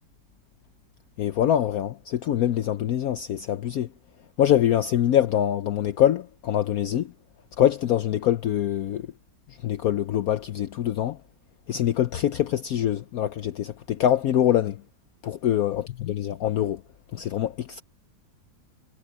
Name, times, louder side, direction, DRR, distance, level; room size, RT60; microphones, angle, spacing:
voice 1, 1.2-3.9 4.4-7.1 7.6-9.1 9.6-11.2 11.7-14.8 15.2-16.8 17.1-17.8, left 11 dB, 65° left, 1.0 m, -24 dB
omnidirectional pair, 1.9 m